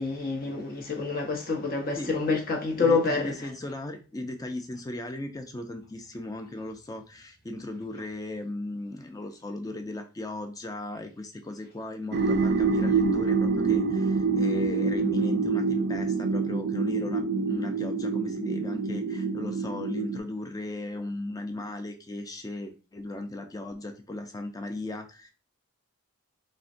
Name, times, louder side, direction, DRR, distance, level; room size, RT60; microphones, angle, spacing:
voice 1, 0.0-3.3, left 4 dB, 45° left, 0.8 m, -27 dB
voice 2, 2.8-25.3, left 2 dB, 15° left, 0.4 m, -37 dB
sound 1, 12.1-20.2, right 4 dB, 50° right, 0.3 m, -26 dB
3.8 x 2.1 x 2.5 m
head